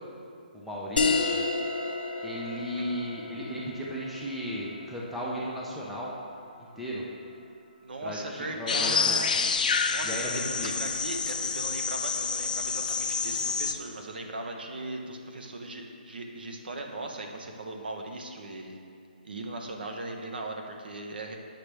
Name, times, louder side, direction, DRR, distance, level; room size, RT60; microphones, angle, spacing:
voice 1, 0.5-1.4 2.2-6.1 6.8-7.0 8.0-9.2 10.0-10.7, equal, ahead, -6 dB, 0.4 m, -35 dB
sound 1, 1.0-6.0, left 4 dB, 75° left, 1.0 m, -31 dB
voice 2, 7.8-18.8 19.2-21.4, right 2 dB, 75° right, 3 dB, 0.9 m, -38 dB
sound 2, 8.7-13.7, left 5 dB, 55° left, 0.5 m, -28 dB
8.6 x 5.9 x 3.3 m, 2.4 s
hypercardioid pair, 170°, 5 cm